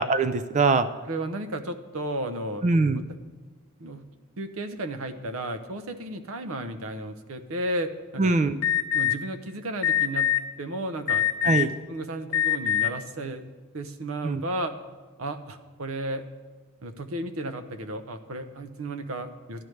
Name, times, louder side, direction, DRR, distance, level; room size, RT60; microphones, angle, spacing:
voice 1, 0.0-0.9 2.6-3.0 8.2-8.6 11.4-11.7 14.2-14.4, right 3 dB, 35° right, 12 dB, 0.3 m, -22 dB
voice 2, 1.1-2.6 3.8-4.1 4.4-8.3 8.9-10.3 10.6-13.4 13.7-14.7 15.2-16.2 16.8-19.6, right 1 dB, 70° right, 9 dB, 0.7 m, -33 dB
Alarm, 8.6-9.1 9.8-10.4 11.1-11.7 12.3-12.9, left 10 dB, 75° left, 0.8 m, -23 dB
12.5 x 10.5 x 3.2 m, 1.3 s
head